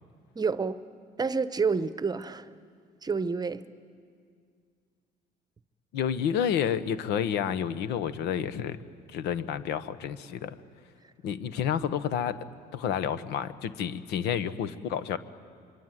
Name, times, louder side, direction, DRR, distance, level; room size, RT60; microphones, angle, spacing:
voice 1, 0.3-0.8 1.2-2.5 3.0-3.6, right 5 dB, 25° right, 0.9 m, -28 dB
voice 2, 5.9-8.8 9.1-10.6 11.2-12.4 12.7-15.2, left 8 dB, 85° left, 1.1 m, -30 dB
24.5 x 24.5 x 9.2 m
cardioid pair, 110°, 17 cm